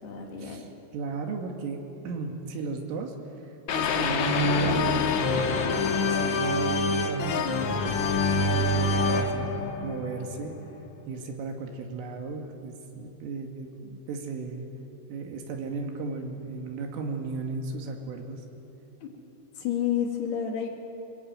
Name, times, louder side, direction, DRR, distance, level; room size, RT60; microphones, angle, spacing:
voice 1, 0.0-0.7 19.0-19.1 19.6-20.7, left 9 dB, 60° left, 1 dB, 4.0 m, -30 dB
voice 2, 0.9-3.2 3.7-5.4 5.8-10.5 11.1-14.7 15.1-18.4, right 4 dB, 80° right, 3 dB, 4.7 m, -35 dB
sound 1, 3.7-10.7, left 3 dB, 80° left, 1.6 m, -26 dB
24.0 x 23.5 x 9.1 m, 2.9 s
omnidirectional pair, 5.8 m